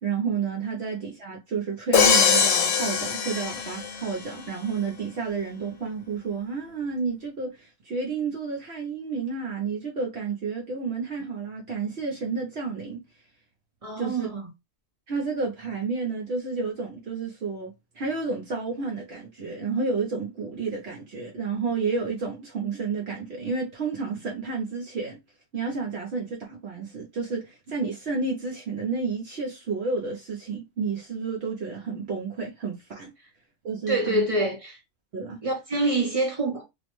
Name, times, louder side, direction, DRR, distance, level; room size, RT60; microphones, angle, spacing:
voice 1, 0.0-13.0 14.0-14.3 15.1-25.2 25.5-33.1 33.6-34.3 35.1-35.4, right 4 dB, 60° right, 0.9 m, -31 dB
Crash cymbal, 1.9-4.1, left 6 dB, 80° left, 0.9 m, -22 dB
voice 2, 13.8-14.4 33.9-34.8 35.4-36.6, right 2 dB, 35° right, 0.6 m, -26 dB
2.5 x 2.1 x 2.8 m
omnidirectional pair, 1.3 m